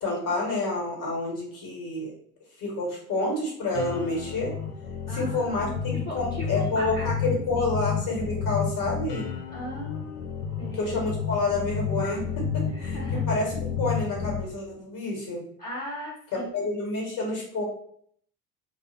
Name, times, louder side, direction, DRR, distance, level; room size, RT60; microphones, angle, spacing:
voice 1, 0.0-2.1 2.6-4.5 5.1-9.3 10.7-13.0 13.3-15.4 16.5-17.6, left 2 dB, 45° left, -1 dB, 1.4 m, -29 dB
sound 1, 3.7-14.4, left 6 dB, 90° left, 0.6 m, -31 dB
voice 2, 5.1-5.8 6.1-7.6 9.5-10.3 10.6-10.9 12.7-13.2 15.6-16.5, left 1 dB, 20° left, -5 dB, 1.0 m, -38 dB
2.3 x 2.1 x 3.4 m, 0.63 s
hypercardioid pair, 60°, 45 cm